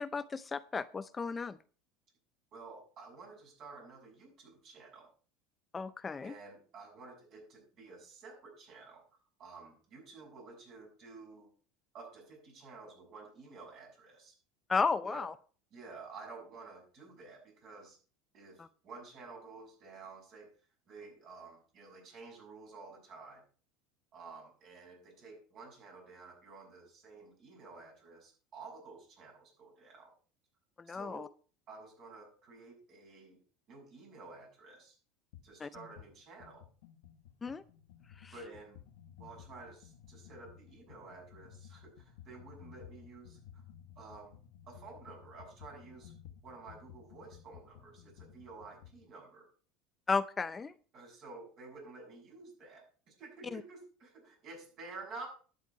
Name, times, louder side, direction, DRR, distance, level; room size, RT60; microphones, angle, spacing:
voice 1, 0.0-1.6 5.7-6.3 14.7-15.3 18.6-18.7 30.8-31.3 35.6-35.7 37.4-37.6 38.2-38.3 50.1-50.7 53.5-53.6, left 4 dB, 20° left, 13 dB, 0.5 m, -34 dB
voice 2, 2.5-5.1 6.2-11.5 11.9-14.4 15.0-15.2 15.7-18.0 18.3-20.5 20.9-23.4 24.1-30.1 30.9-31.2 31.7-33.4 33.7-35.0 35.4-36.6 38.3-38.8 39.2-43.6 44.0-44.4 44.7-46.1 46.4-49.5 50.9-55.3, right 4 dB, 45° right, 1 dB, 7.1 m, -51 dB
sound 1, 35.3-35.5 35.7-49.0, left 9 dB, 80° left, 1.4 m, -55 dB
11.5 x 9.4 x 4.6 m, 0.40 s
supercardioid pair, 125°, 0 cm